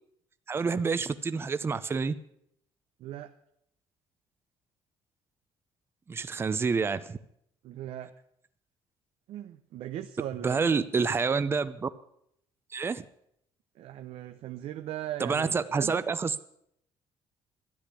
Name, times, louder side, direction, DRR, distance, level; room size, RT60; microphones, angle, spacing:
voice 1, 0.5-2.1 6.1-7.2 10.4-11.9 12.7-13.0 15.2-16.3, right 5 dB, 25° right, 13 dB, 0.7 m, -28 dB
voice 2, 3.0-3.3 7.6-8.1 9.3-10.6 13.7-15.9, right 12 dB, 70° right, 7 dB, 0.8 m, -39 dB
13.5 x 10.0 x 8.2 m, 0.72 s
cardioid pair, 130°, 10 cm